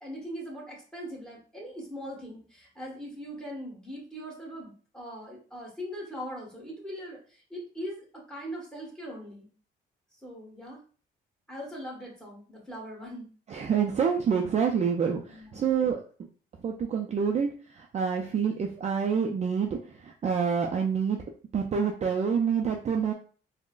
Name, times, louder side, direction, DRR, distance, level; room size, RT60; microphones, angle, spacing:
voice 1, 0.0-9.5 10.2-10.8 11.5-13.3 15.3-15.7, equal, 5° left, -3 dB, 1.3 m, -40 dB
voice 2, 13.5-16.0 16.6-21.2 21.5-23.1, right 6 dB, 35° right, 1 dB, 0.4 m, -27 dB
3.6 x 2.1 x 2.4 m, 0.41 s
cardioid pair, 90°, 20 cm